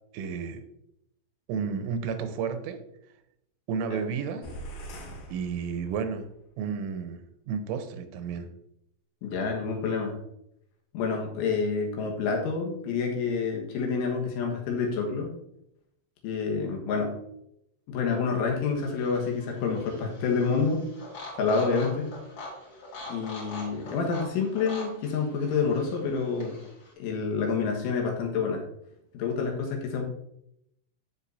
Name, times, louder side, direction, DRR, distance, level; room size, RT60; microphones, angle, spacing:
voice 1, 0.1-0.6 1.5-2.8 3.7-4.5 5.3-6.3 6.6-8.5, right 6 dB, 85° right, 9 dB, 3.3 m, -32 dB
sound 1, 4.4-6.3, right 1 dB, 60° left, 3.0 m, -42 dB
voice 2, 9.2-10.1 10.9-15.3 16.2-17.1 17.9-20.8 21.4-22.1 23.1-26.6 27.0-28.6 29.1-30.0, left 5 dB, 80° left, 0 dB, 3.8 m, -28 dB
sound 2, 18.8-26.9, left 2 dB, 35° left, 2.8 m, -44 dB
14.5 x 5.6 x 2.7 m, 0.78 s
omnidirectional pair, 5.6 m